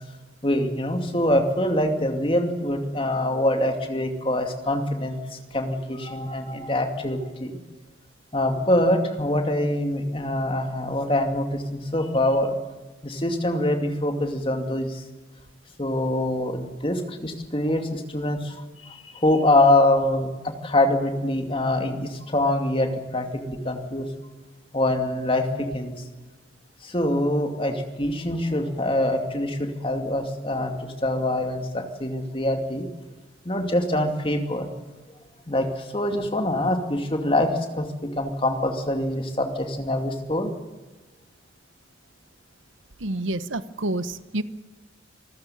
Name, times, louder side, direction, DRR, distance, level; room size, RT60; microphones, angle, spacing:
voice 1, 0.4-7.5 8.3-12.6 13.0-15.0 15.8-24.1 24.7-25.9 26.8-32.9 33.4-34.7 35.5-37.5 37.8-37.9 38.2-40.5, left 1 dB, 25° left, 5 dB, 2.4 m, -24 dB
voice 2, 43.0-44.4, right 2 dB, 85° right, 14 dB, 1.0 m, -28 dB
25.5 x 14.5 x 8.6 m, 1.2 s
head